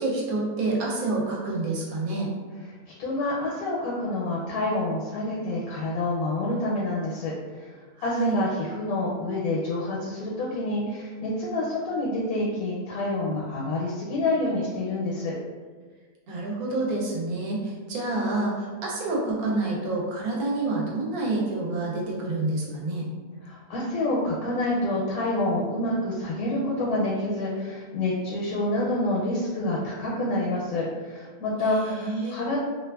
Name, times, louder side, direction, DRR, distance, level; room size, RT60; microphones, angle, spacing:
voice 1, 0.0-2.3 8.0-8.4 16.3-23.1 31.7-32.4, right 2 dB, 75° right, -3 dB, 1.1 m, -28 dB
voice 2, 3.0-7.3 7.6-7.7 8.0-15.3 23.4-32.6, left 2 dB, 80° left, -4 dB, 1.0 m, -27 dB
2.7 x 2.3 x 2.2 m, 1.5 s
omnidirectional pair, 1.6 m